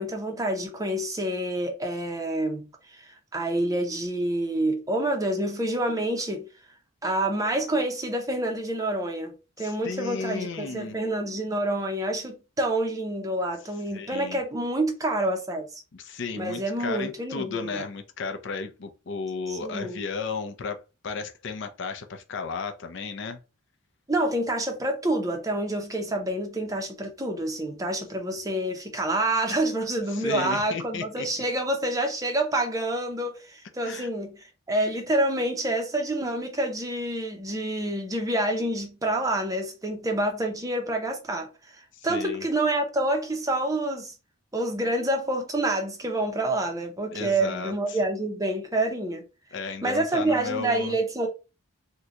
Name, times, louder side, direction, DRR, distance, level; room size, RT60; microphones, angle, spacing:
voice 1, 0.0-6.5 7.0-15.8 16.3-17.9 19.5-20.0 24.1-44.1 44.5-49.2 49.8-51.3, right 1 dB, 15° right, 0.5 m, -28 dB
voice 2, 9.6-11.0 13.9-14.4 15.9-20.8 21.0-23.4 30.1-31.3 33.8-34.1 42.1-42.5 47.1-47.7 49.5-51.0, left 4 dB, 55° left, 0.5 m, -34 dB
3.7 x 2.2 x 2.8 m
head